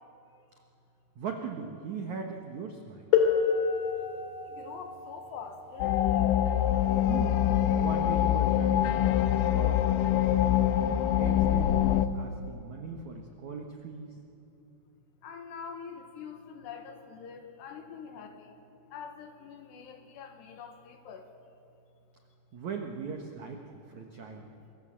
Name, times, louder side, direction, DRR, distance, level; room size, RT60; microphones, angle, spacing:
voice 1, 1.1-3.1 7.1-7.4 7.7-10.7 11.1-14.2 22.5-24.5, right 5 dB, 85° right, 3 dB, 1.6 m, -39 dB
sound 1, 3.1-8.6 9.6-9.7 10.5-10.7, left 6 dB, 45° left, 3.7 m, -31 dB
voice 2, 4.4-6.3 15.2-18.5 18.9-21.3, left 6 dB, 70° left, 6 dB, 3.1 m, -45 dB
sound 2, 5.8-12.1, left 11 dB, 90° left, 3.4 m, -25 dB
27.0 x 23.0 x 7.6 m, 2.7 s
omnidirectional pair, 5.8 m